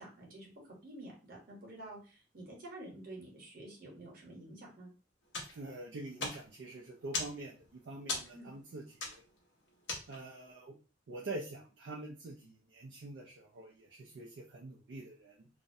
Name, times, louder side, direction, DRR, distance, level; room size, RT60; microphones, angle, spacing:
voice 1, 0.0-4.9 8.3-8.5, right 1 dB, 50° right, -1 dB, 1.0 m, -49 dB
sound 1, 5.3-10.5, left 3 dB, 75° left, 0.8 m, -42 dB
voice 2, 5.5-9.2 10.1-10.8 11.1-15.5, right 2 dB, 70° right, -1 dB, 0.4 m, -46 dB
2.4 x 2.1 x 2.6 m, 0.35 s
head